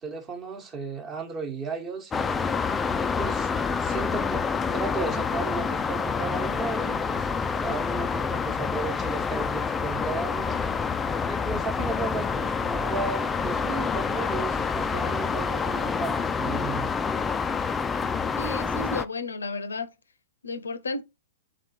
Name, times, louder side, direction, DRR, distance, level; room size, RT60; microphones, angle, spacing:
voice 1, 0.0-2.4 3.0-3.5 3.8-4.5 4.7-10.6 11.3-16.9, right 4 dB, 25° right, 1.1 m, -35 dB
City streets from far away, 2.1-19.0, left 5 dB, 15° left, 0.3 m, -27 dB
voice 2, 18.4-19.9 20.4-21.0, left 3 dB, 80° left, 0.7 m, -33 dB
3.9 x 3.2 x 4.2 m
figure-of-eight pair, 110°, 0 cm